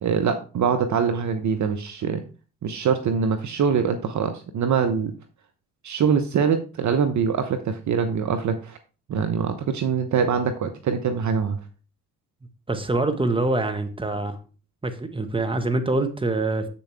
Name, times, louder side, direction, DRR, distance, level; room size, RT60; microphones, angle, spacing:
voice 1, 0.0-2.2 2.6-5.1 5.8-8.8 9.1-11.6, right 6 dB, 45° right, 8 dB, 1.0 m, -23 dB
voice 2, 12.7-14.4 14.8-16.7, right 2 dB, 15° right, 7 dB, 1.5 m, -25 dB
8.0 x 6.8 x 3.5 m, 0.36 s
hypercardioid pair, 50°, 40 cm